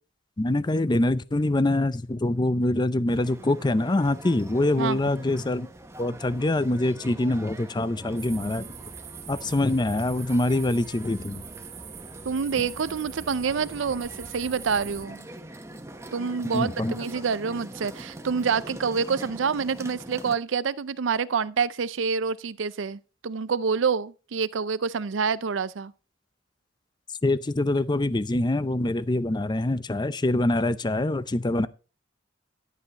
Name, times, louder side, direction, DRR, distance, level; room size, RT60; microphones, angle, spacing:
voice 1, 0.4-5.7 6.0-8.7 9.3-11.4 16.5-17.0 27.2-31.7, left 2 dB, 25° left, 0.5 m, -24 dB
sound 1, 3.1-20.4, right 1 dB, 15° right, 1.0 m, -43 dB
sound 2, 8.2-15.0, right 6 dB, 35° right, 1.6 m, -43 dB
voice 2, 12.3-15.2 16.1-25.9, right 5 dB, 85° right, 0.5 m, -27 dB
11.5 x 8.3 x 4.0 m
head